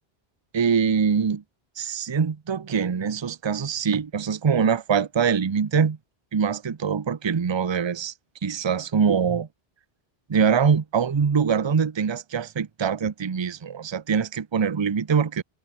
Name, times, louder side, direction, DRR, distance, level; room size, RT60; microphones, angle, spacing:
voice 1, 0.5-1.4 1.8-6.0 6.3-8.1 8.4-9.5 10.3-15.4, right 6 dB, 30° right, 0.6 m, -23 dB
omnidirectional pair, 1.0 m